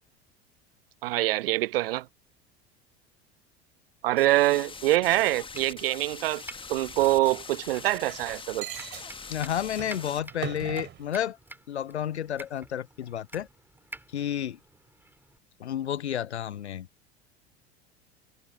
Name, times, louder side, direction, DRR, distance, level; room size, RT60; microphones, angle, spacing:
voice 1, 1.0-2.1 4.0-6.4 6.7-8.7, right 17 dB, 60° right, 0.5 m, -25 dB
sound 1, 4.2-10.2, left 5 dB, 15° left, 1.5 m, -43 dB
Domestic sounds home sounds, 4.7-15.4, right 2 dB, 5° right, 5.7 m, -50 dB
sound 2, 6.1-7.8 8.6-9.1 9.7-11.1, right 10 dB, 35° right, 3.6 m, -41 dB
voice 2, 9.3-11.4 11.7-13.5 14.1-14.6 15.6-16.9, left 10 dB, 80° left, 0.5 m, -31 dB
figure-of-eight pair, 70°, 33 cm